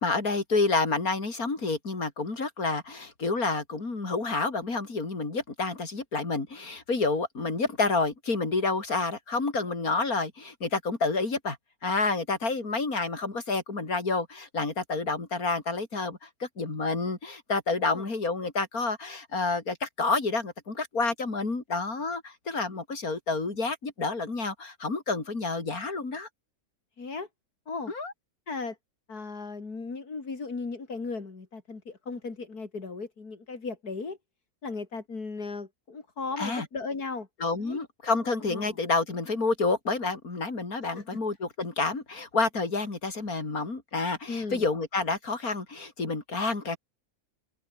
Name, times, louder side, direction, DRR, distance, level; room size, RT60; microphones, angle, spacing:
voice 1, 0.0-11.6 11.8-26.3 27.9-28.1 36.4-36.7 37.4-46.8, left 3 dB, 70° left, 4.4 m, -29 dB
voice 2, 27.0-27.3 27.7-27.9 28.5-28.8 29.1-34.2 34.6-37.3 37.6-37.8 38.4-38.8 41.0-41.1 44.3-44.6, left 4 dB, 85° left, 3.8 m, -36 dB
open air
omnidirectional pair, 1.6 m